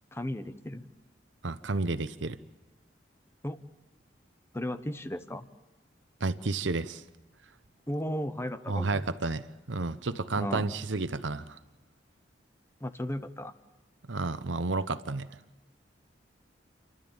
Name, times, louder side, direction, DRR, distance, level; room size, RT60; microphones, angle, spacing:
voice 1, 0.1-0.8 3.4-3.6 4.5-5.5 7.9-9.0 10.4-10.7 12.8-13.5, left 1 dB, 15° left, 11 dB, 0.9 m, -35 dB
voice 2, 1.4-2.4 6.2-7.0 8.7-9.4 9.7-11.6 14.1-15.3, right 3 dB, 85° right, 12 dB, 0.9 m, -31 dB
29.5 x 12.5 x 8.9 m, 1.1 s
head